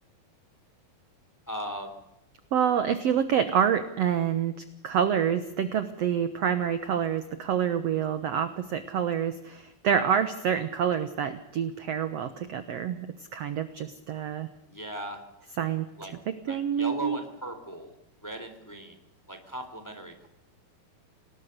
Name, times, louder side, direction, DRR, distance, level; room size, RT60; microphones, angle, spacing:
voice 1, 1.5-2.0 14.7-15.2 16.0-16.1 16.5-17.9 18.2-19.0 19.3-20.3, right 1 dB, 5° left, 7 dB, 2.8 m, -38 dB
voice 2, 2.5-4.5 4.8-13.1 13.3-14.5 15.6-15.9 16.3-17.2, right 8 dB, 65° right, 10 dB, 1.7 m, -27 dB
27.0 x 19.0 x 6.7 m, 0.85 s
omnidirectional pair, 4.3 m